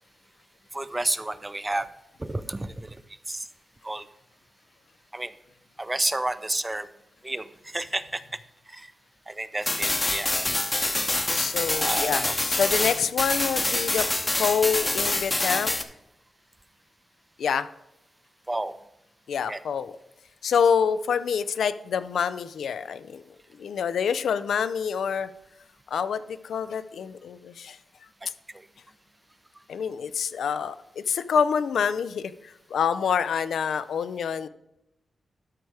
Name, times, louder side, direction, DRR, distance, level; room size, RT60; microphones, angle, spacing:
voice 1, 0.7-1.9 2.2-3.0 3.3-3.5 3.8-4.1 5.1-5.3 5.8-6.9 7.2-8.4 8.7-8.9 9.3-10.6 11.8-12.3 18.5-18.8 19.5-19.6 28.2-28.3 28.5-28.7, right 2 dB, 15° right, 14 dB, 0.4 m, -31 dB
sound 1, 9.6-15.8, left 2 dB, 20° left, 0.7 m, -26 dB
voice 2, 11.3-12.2 12.5-14.1 14.4-15.8 17.4-17.7 19.3-19.9 20.4-23.2 23.6-25.3 25.9-27.8 29.7-34.5, left 7 dB, 90° left, 13 dB, 0.4 m, -26 dB
12.5 x 4.7 x 4.7 m, 0.85 s
wide cardioid pair, 100°, 0 cm